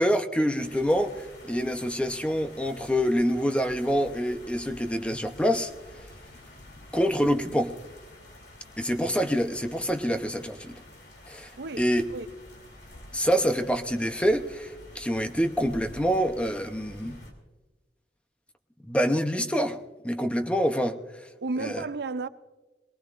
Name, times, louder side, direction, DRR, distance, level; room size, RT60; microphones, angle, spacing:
voice 1, 0.0-5.7 6.9-7.7 8.8-10.8 11.3-11.5 11.8-12.0 13.1-17.2 18.9-19.8 20.0-21.0 21.6-21.8, equal, 5° left, 0.7 m, -26 dB
sound 1, 0.6-17.3, left 1 dB, 70° left, 2.9 m, -48 dB
voice 2, 11.6-12.3 21.4-22.3, right 3 dB, 65° right, 0.5 m, -33 dB
22.0 x 18.5 x 2.5 m
head